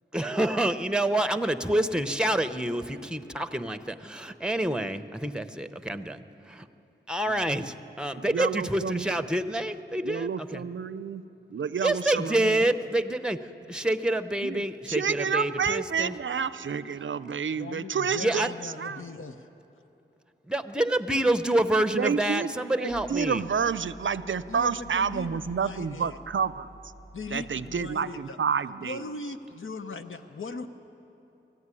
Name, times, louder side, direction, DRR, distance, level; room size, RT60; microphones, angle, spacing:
voice 1, 0.1-6.7 7.1-10.6 11.8-16.2 18.2-18.5 20.5-23.4, right 1 dB, 5° right, 9 dB, 0.7 m, -27 dB
voice 2, 8.2-9.2 10.0-11.2 11.5-12.7 14.4-19.0 21.9-22.5 22.8-26.7 27.3-29.0, right 6 dB, 70° right, 14 dB, 0.5 m, -29 dB
voice 3, 17.6-19.5 24.5-26.2 27.1-28.4 28.8-30.7, left 3 dB, 85° left, 8 dB, 0.8 m, -39 dB
sound 1, 22.9-28.0, right 1 dB, 40° left, 3.0 m, -50 dB
19.5 x 14.0 x 9.8 m, 2.9 s
wide cardioid pair, 80°, 20 cm